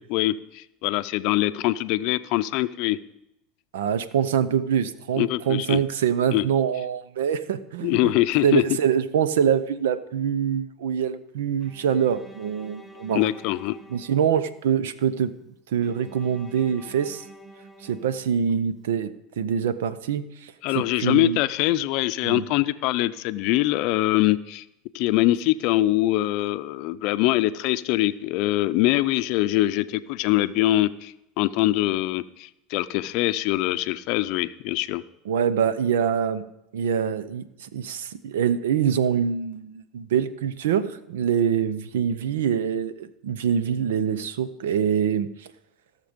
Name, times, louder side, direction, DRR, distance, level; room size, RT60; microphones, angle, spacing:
voice 1, 0.1-3.0 5.2-5.8 6.3-6.5 7.8-8.6 13.1-13.8 20.6-24.6 24.9-35.0, left 16 dB, 65° left, 13 dB, 0.5 m, -23 dB
voice 2, 3.7-8.1 8.4-13.3 13.9-15.3 15.7-17.2 17.8-19.1 19.4-21.4 22.2-22.4 35.3-36.4 36.7-45.3, right 8 dB, 90° right, 15 dB, 0.7 m, -24 dB
Bowed string instrument, 11.6-14.8 15.8-18.7, equal, 5° right, 1.4 m, -48 dB
16.5 x 6.7 x 5.2 m, 0.85 s
supercardioid pair, 105°, 0 cm